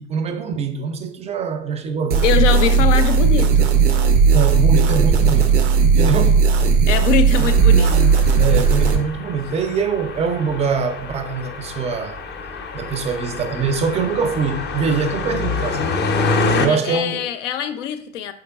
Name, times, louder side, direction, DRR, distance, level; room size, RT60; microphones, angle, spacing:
voice 1, 0.0-2.2 4.3-5.6 5.9-6.5 7.4-7.5 8.4-12.2 12.7-15.9 16.6-17.3, right 5 dB, 20° right, 0.4 m, -23 dB
sound 1, 2.1-9.0, right 5 dB, 75° right, 0.7 m, -15 dB
voice 2, 2.2-3.7 6.9-8.3 16.7-18.3, left 9 dB, 75° left, 0.5 m, -23 dB
sound 2, 7.4-16.7, left 3 dB, 30° left, 0.5 m, -27 dB
4.6 x 3.2 x 2.3 m
figure-of-eight pair, 80°, 37 cm